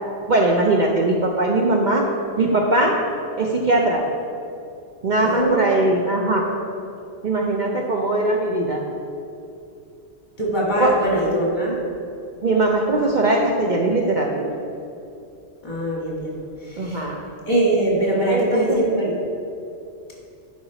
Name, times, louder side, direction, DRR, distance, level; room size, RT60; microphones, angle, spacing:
voice 1, 0.3-2.1 2.4-3.0 3.4-4.1 5.0-6.5 7.2-8.8 10.8-11.0 12.4-14.5 16.8-17.2 18.3-18.8, right 2 dB, 50° right, 0 dB, 0.7 m, -20 dB
voice 2, 5.2-5.8 10.4-11.8 15.6-17.1 17.5-19.1, right 1 dB, 45° left, -4 dB, 1.9 m, -22 dB
11.0 x 4.9 x 4.1 m, 2.6 s
omnidirectional pair, 1.1 m